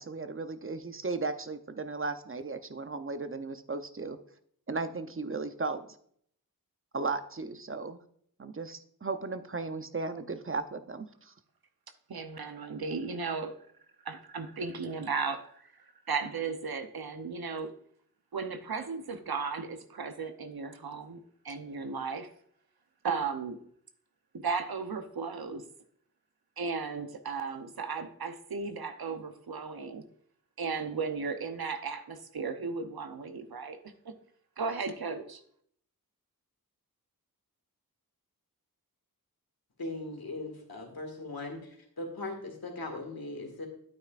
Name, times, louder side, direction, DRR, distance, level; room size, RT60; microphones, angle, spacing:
voice 1, 0.0-4.2 4.7-5.9 6.9-8.0 8.4-11.3, right 3 dB, 35° right, 0.6 m, -36 dB
voice 2, 12.1-13.6 14.0-17.7 18.3-21.2 21.4-22.3 23.0-23.6 24.4-25.6 26.6-30.0 30.6-33.8 34.0-34.1 34.6-35.4, right 5 dB, 80° right, 0.8 m, -35 dB
voice 3, 39.8-41.7 42.0-43.7, left 2 dB, 75° left, 1.9 m, -39 dB
9.4 x 8.6 x 2.5 m
wide cardioid pair, 45°, 36 cm